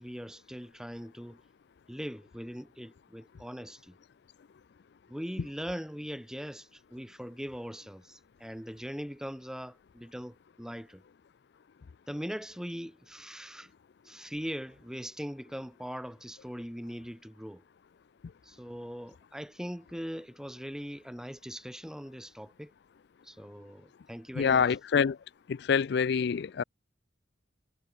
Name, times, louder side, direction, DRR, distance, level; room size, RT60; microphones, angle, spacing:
voice 1, 0.0-1.4 1.9-4.0 5.1-11.0 12.1-13.7 14.1-17.6 18.4-22.7 23.2-24.6, equal, 5° right, 3.3 m, -41 dB
voice 2, 24.3-25.2 25.5-26.6, left 6 dB, 60° left, 0.4 m, -26 dB
head